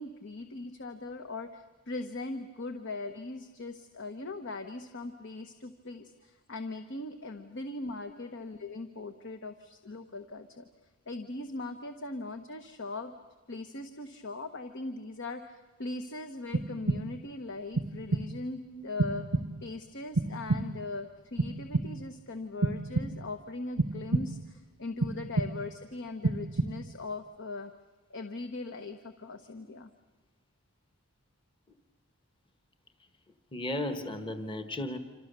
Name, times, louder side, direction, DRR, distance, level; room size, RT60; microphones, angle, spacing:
voice 1, 0.0-10.7 11.1-13.1 13.5-19.2 19.6-27.7 28.1-29.9, left 2 dB, 60° left, 7 dB, 1.2 m, -40 dB
sound 1, 16.5-17.3 17.8-18.5 19.0-19.8 20.1-21.0 21.4-22.2 22.6-23.4 23.8-24.6 25.0-25.8 26.2-27.0, right 2 dB, 85° right, 0.8 m, -31 dB
voice 2, 33.5-35.0, left 1 dB, 25° left, 8 dB, 1.3 m, -35 dB
27.5 x 26.5 x 6.8 m, 1.3 s
head